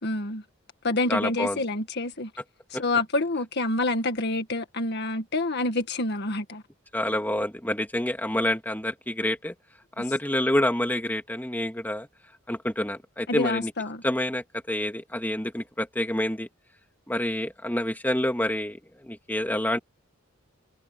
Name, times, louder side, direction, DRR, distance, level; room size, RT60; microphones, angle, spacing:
voice 1, 0.0-0.4 0.8-2.3 2.7-6.6 13.3-14.0, left 2 dB, 55° left, 1.8 m, -27 dB
voice 2, 1.1-1.6 6.9-9.5 10.0-12.1 12.5-13.7 14.0-16.5 17.1-19.8, left 1 dB, 10° left, 2.7 m, -27 dB
head